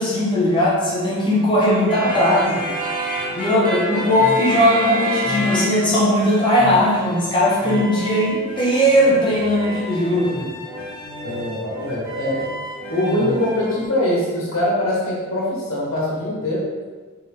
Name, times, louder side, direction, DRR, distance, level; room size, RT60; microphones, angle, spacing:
voice 1, 0.0-2.6 3.4-10.5, equal, 25° left, -6 dB, 1.8 m, -18 dB
sound 1, 1.9-5.9 6.2-13.8, equal, 10° right, 1.9 m, -29 dB
voice 2, 11.2-12.4 12.9-16.6, left 1 dB, 80° left, -5 dB, 1.9 m, -22 dB
6.7 x 4.4 x 3.9 m, 1.4 s
head